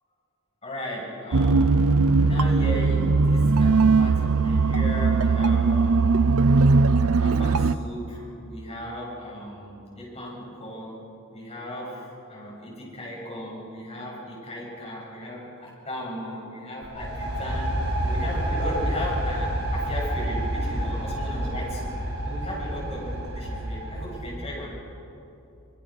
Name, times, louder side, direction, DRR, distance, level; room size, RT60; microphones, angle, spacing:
voice 1, 0.6-1.9 2.2-6.2 7.2-11.0 11.3-24.7, left 1 dB, 30° left, -4 dB, 7.7 m, -36 dB
sound 1, 1.3-7.7, right 4 dB, 90° right, 0.7 m, -19 dB
sound 2, 16.8-24.6, right 1 dB, 50° right, 6.1 m, -29 dB
25.5 x 23.0 x 6.5 m, 2.8 s
head